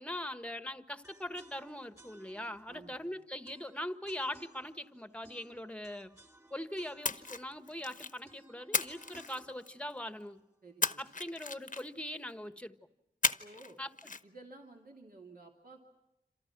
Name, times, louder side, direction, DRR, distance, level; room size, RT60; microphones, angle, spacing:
voice 1, 0.0-6.1 6.5-10.4 11.0-12.8 13.8-13.9, left 1 dB, 5° left, 10 dB, 1.4 m, -41 dB
sound 1, 1.0-11.1, right 1 dB, 20° right, 3.3 m, -60 dB
voice 2, 2.7-3.1 10.6-11.2 13.4-13.8 14.2-15.8, right 2 dB, 55° right, 0 dB, 2.9 m, -53 dB
Splash splatter, 7.0-8.2 8.7-9.9 10.8-12.1 13.2-13.7 14.0-14.2, left 4 dB, 50° left, 1.1 m, -35 dB
28.0 x 27.5 x 6.1 m, 0.94 s
wide cardioid pair, 60°, 17 cm